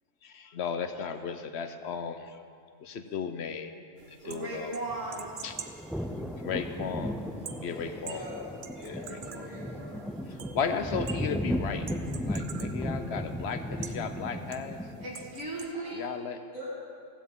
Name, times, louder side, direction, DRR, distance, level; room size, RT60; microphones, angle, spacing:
voice 1, 0.2-2.4 2.8-3.7 4.1-4.7 5.4-5.6 6.4-7.2 7.6-8.3 8.8-9.5 10.3-11.9 12.3-14.8 15.9-16.4, left 6 dB, 60° left, 9 dB, 1.0 m, -35 dB
sound 1, 4.0-15.7, right 7 dB, 55° right, 0.7 m, -47 dB
voice 2, 4.2-5.4 15.0-16.1, right 2 dB, 75° right, -5 dB, 2.2 m, -36 dB
sound 2, 4.9-15.3, equal, ahead, 0.3 m, -36 dB
voice 3, 7.7-8.4 8.7-10.1 15.7-15.8 16.5-16.7, left 1 dB, 85° left, -9 dB, 4.6 m, -43 dB
15.5 x 15.5 x 3.7 m, 2.3 s
omnidirectional pair, 1.3 m